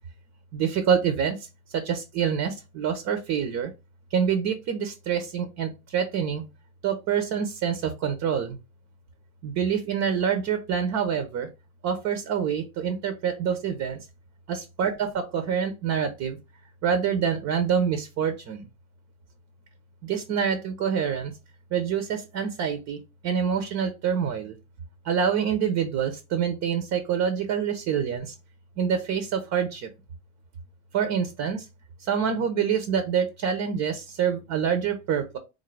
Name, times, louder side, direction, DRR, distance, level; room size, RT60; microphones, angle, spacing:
voice 1, 0.5-1.3 1.7-3.7 4.1-6.4 6.8-8.6 9.4-11.5 11.8-14.0 14.5-16.4 16.8-18.6 20.0-21.3 21.7-23.0 23.2-24.5 25.1-28.3 28.8-29.8 30.9-31.6 32.1-35.4, right 7 dB, 35° right, 8 dB, 0.7 m, -26 dB
3.8 x 2.6 x 3.2 m, 0.26 s
hypercardioid pair, 100°, 43 cm